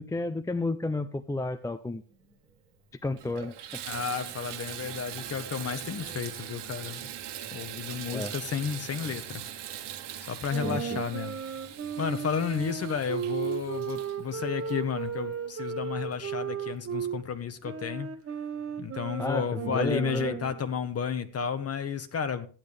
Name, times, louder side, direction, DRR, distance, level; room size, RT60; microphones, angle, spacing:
voice 1, 0.0-2.0 3.0-3.7 8.1-8.3 10.6-11.0 19.2-20.4, left 2 dB, 10° left, 0.4 m, -31 dB
sound 1, 2.1-21.6, equal, 5° right, 5.0 m, -60 dB
Water tap faucet / Bathtub (filling or washing), 2.5-2.6 3.1-15.5 16.1-16.2 16.7-16.8, right 11 dB, 70° right, 1.7 m, -41 dB
voice 2, 3.9-7.1 7.5-9.4 10.3-11.4 12.0-18.1 18.8-22.5, left 7 dB, 35° left, 1.2 m, -32 dB
sound 2, 10.5-17.2 17.6-20.6, right 7 dB, 30° right, 1.0 m, -35 dB
14.5 x 10.5 x 3.3 m
cardioid pair, 145°, 43 cm